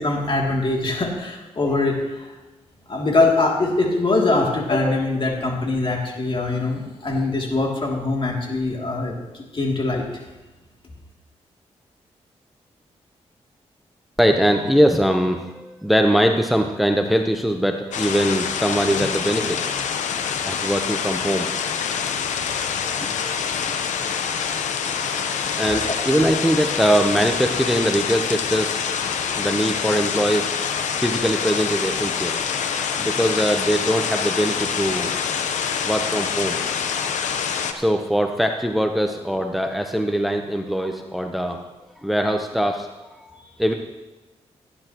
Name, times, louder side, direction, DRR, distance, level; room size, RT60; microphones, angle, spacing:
voice 1, 0.0-2.3 2.9-10.0 25.5-25.9, left 2 dB, 45° left, -1 dB, 2.9 m, -23 dB
voice 2, 14.2-19.7 20.4-21.5 22.6-22.7 23.2-23.3 23.6-23.7 25.0-28.8 29.2-30.5 31.0-32.4 33.0-35.1 35.8-36.6 37.7-41.6 42.0-42.9 43.2-43.3 43.6-43.7, equal, ahead, 4 dB, 0.9 m, -22 dB
sound 1, 17.9-37.7, left 7 dB, 85° left, 0.8 m, -26 dB
17.0 x 10.0 x 3.1 m, 1.1 s
cardioid pair, 60°, 12 cm